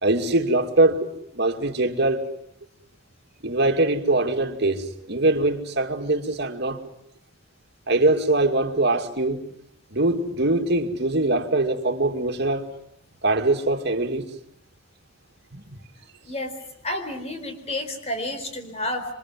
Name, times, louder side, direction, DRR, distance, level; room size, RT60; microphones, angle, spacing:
voice 1, 0.0-2.2 3.4-6.8 7.9-9.4 9.9-12.6 13.2-14.3 15.5-15.6, right 2 dB, 60° right, 2.5 m, -22 dB
voice 2, 16.8-19.1, left 1 dB, 35° left, 4.5 m, -30 dB
27.5 x 25.5 x 7.9 m
head